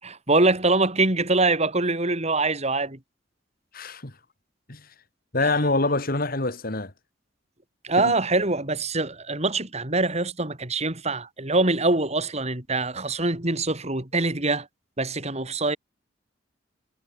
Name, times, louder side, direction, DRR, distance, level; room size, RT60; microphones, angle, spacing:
voice 1, 0.0-3.0 5.4-5.5 7.8-14.7 15.0-15.8, right 2 dB, 35° right, 4.4 m, -24 dB
voice 2, 3.7-4.1 4.7-4.8 5.3-6.9 8.0-8.1, left 2 dB, 50° left, 2.9 m, -25 dB
head